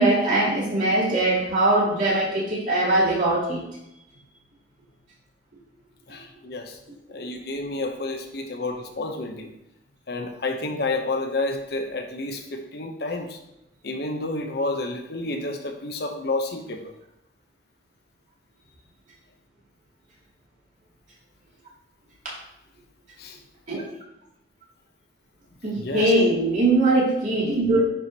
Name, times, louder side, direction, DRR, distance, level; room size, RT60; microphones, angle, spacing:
voice 1, 0.0-3.6 22.2-22.3 23.7-23.8 25.6-27.8, right 2 dB, 45° right, -6 dB, 2.6 m, -21 dB
voice 2, 6.1-6.8 7.1-9.5 10.1-13.4 13.8-16.8 23.2-23.4 25.8-26.1, left 2 dB, 60° left, 4 dB, 0.8 m, -30 dB
10.0 x 4.9 x 2.9 m, 0.86 s
head